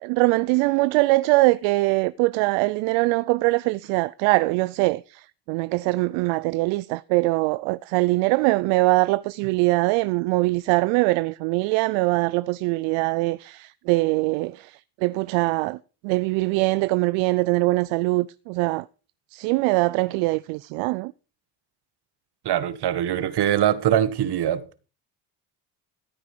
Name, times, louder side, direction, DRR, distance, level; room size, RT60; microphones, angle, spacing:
voice 1, 0.0-15.8 16.0-18.8 19.3-21.1, right 22 dB, 80° right, 0.5 m, -22 dB
voice 2, 22.4-24.8, right 11 dB, 55° right, 1.5 m, -23 dB
14.5 x 9.1 x 5.1 m
hypercardioid pair, 65°, 46 cm